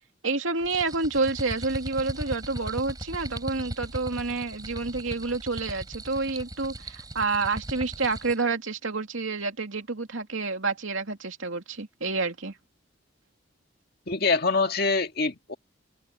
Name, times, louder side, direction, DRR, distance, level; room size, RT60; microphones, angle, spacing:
voice 1, 0.0-12.6, right 3 dB, 80° right, 2.6 m, -29 dB
sound 1, 0.6-8.5, right 1 dB, 20° right, 5.7 m, -38 dB
voice 2, 14.1-15.5, left 4 dB, 50° left, 2.0 m, -24 dB
head